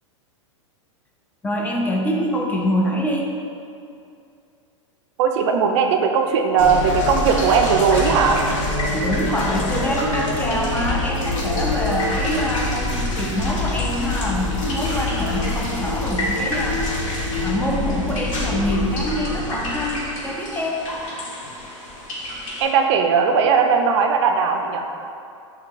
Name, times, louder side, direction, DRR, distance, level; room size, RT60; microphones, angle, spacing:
voice 1, 1.4-3.3 8.9-17.1 17.4-20.8, equal, 10° left, -1 dB, 0.4 m, -25 dB
voice 2, 5.2-8.4 22.6-24.9, right 6 dB, 60° right, 4 dB, 0.4 m, -18 dB
sound 1, 6.6-22.6, left 2 dB, 80° left, 1.5 m, -25 dB
6.5 x 2.8 x 2.5 m, 2.5 s
hypercardioid pair, 115°, 16 cm